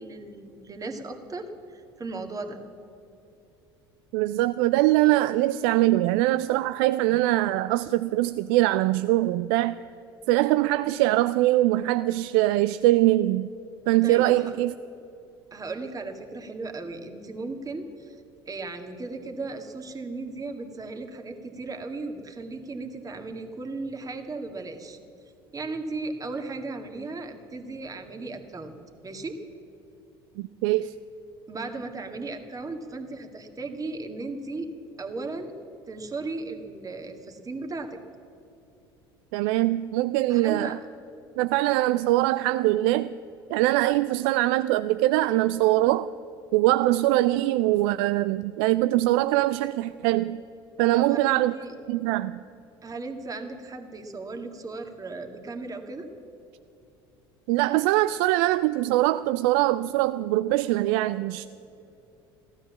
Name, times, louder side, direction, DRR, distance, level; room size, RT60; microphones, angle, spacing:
voice 1, 0.0-2.6 14.0-14.5 15.5-18.2 18.5-25.0 25.5-28.8 29.0-29.4 31.5-34.7 35.0-35.5 35.9-38.0 40.3-40.7 50.9-51.7 52.8-56.1, right 3 dB, 25° right, 2.0 m, -36 dB
voice 2, 4.1-9.8 10.3-13.5 13.9-14.7 30.4-30.9 39.3-40.8 41.4-43.2 43.5-46.1 46.5-50.4 50.8-51.5 51.9-52.4 57.5-61.4, right 16 dB, 65° right, 0.4 m, -22 dB
15.5 x 12.5 x 7.3 m
hypercardioid pair, 70°, 13 cm